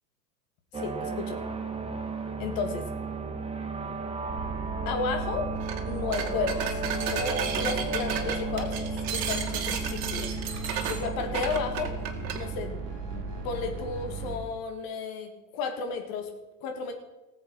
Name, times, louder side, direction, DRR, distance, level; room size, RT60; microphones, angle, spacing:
voice 1, 0.7-1.4 2.4-2.8 4.9-5.5 5.8-8.8 9.1-11.9 12.3-16.3 16.6-16.9, left 4 dB, 45° left, 4 dB, 2.5 m, -33 dB
sound 1, 0.7-13.8, right 3 dB, 10° right, 1.5 m, -35 dB
sound 2, 4.3-14.4, right 3 dB, 30° right, 4.5 m, -36 dB
sound 3, 5.6-5.8 6.1-12.4, right 7 dB, 60° right, 2.1 m, -33 dB
19.0 x 7.5 x 4.9 m, 1.1 s
figure-of-eight pair, 85°, 50 cm